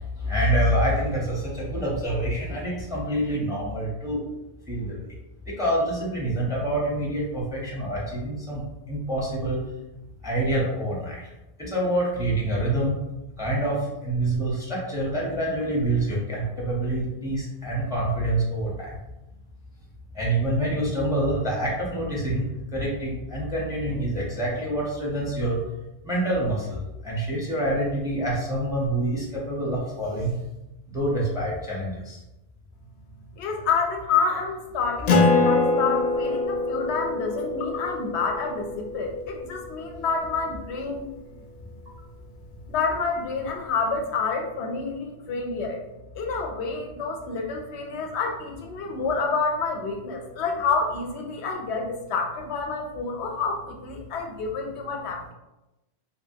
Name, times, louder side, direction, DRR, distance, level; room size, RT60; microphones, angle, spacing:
voice 1, 0.2-4.2 4.7-5.1 5.5-9.6 10.2-11.2 11.6-12.9 13.4-19.0 20.1-22.5 22.7-25.6 26.0-30.3 30.9-32.2, right 1 dB, 5° right, -4 dB, 0.6 m, -26 dB
voice 2, 33.4-41.1 42.7-45.8 46.1-55.3, left 4 dB, 90° left, 2 dB, 0.9 m, -28 dB
Acoustic guitar, 35.1-40.0, left 3 dB, 55° left, 0.4 m, -24 dB
2.8 x 2.8 x 2.6 m, 0.96 s
omnidirectional pair, 1.1 m